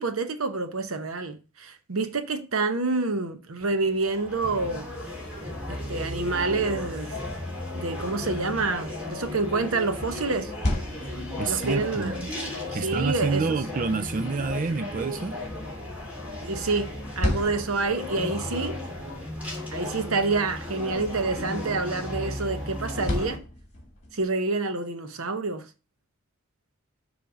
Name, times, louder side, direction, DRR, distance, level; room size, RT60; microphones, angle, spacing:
voice 1, 0.0-4.9 5.7-7.2 7.7-10.5 11.5-12.2 12.7-13.5 16.4-18.8 19.7-23.4 24.1-25.7, right 3 dB, 90° right, 1.0 m, -28 dB
sound 1, 3.6-23.4, left 1 dB, 5° right, 2.8 m, -35 dB
sound 2, 10.3-24.3, left 1 dB, 35° left, 2.4 m, -37 dB
voice 2, 11.4-12.4 12.7-15.4, right 4 dB, 40° right, 0.4 m, -28 dB
7.1 x 3.4 x 6.2 m
head